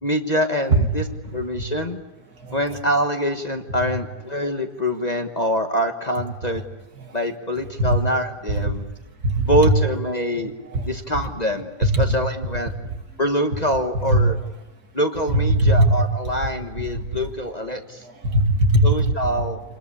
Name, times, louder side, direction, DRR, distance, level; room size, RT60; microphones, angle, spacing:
voice 1, 0.0-1.0 1.3-2.0 2.5-6.6 7.1-8.9 9.5-10.5 10.8-12.7 13.2-14.4 14.9-18.0 18.8-19.6, equal, 25° left, 5 dB, 1.3 m, -24 dB
voice 2, 9.2-9.7 10.4-10.9 11.8-12.1 14.1-14.2 15.3-15.9 16.9-17.1 18.0-19.1, right 1 dB, 65° right, 5 dB, 2.8 m, -19 dB
28.5 x 20.5 x 8.5 m, 1.1 s
omnidirectional pair, 1.8 m